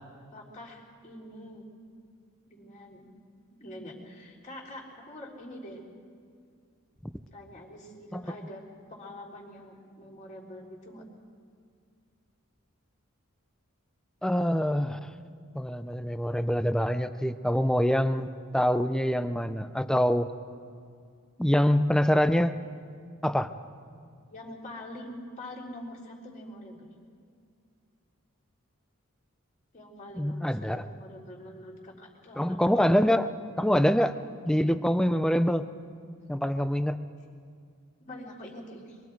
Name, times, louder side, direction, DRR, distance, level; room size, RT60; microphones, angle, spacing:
voice 1, 0.3-1.7 2.5-3.1 3.6-5.8 7.3-8.6 8.9-11.0 24.3-26.9 29.7-32.6 38.1-39.0, left 1 dB, 35° left, -4 dB, 3.6 m, -45 dB
voice 2, 14.2-15.1 15.6-18.3 18.5-20.3 21.4-22.5 23.2-23.5 30.1-30.9 32.4-34.1 34.5-35.6 36.3-37.0, equal, 5° left, 11 dB, 0.5 m, -25 dB
24.5 x 23.0 x 4.7 m, 2.3 s
head